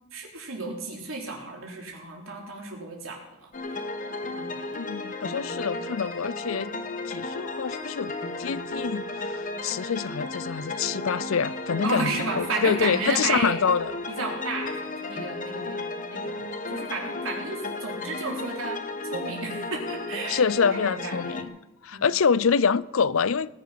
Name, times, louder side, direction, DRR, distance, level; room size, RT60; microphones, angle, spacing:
voice 1, 0.1-3.5 4.3-4.6 11.8-13.6 14.1-18.8 19.1-21.5 21.9-22.1, right 3 dB, 80° right, 3.9 m, -33 dB
sound 1, 3.5-21.4, left 2 dB, 40° left, 1.2 m, -34 dB
voice 2, 4.8-6.7 7.1-13.9 20.3-21.5 21.8-23.5, left 6 dB, 75° left, 0.5 m, -26 dB
19.0 x 10.5 x 6.0 m
head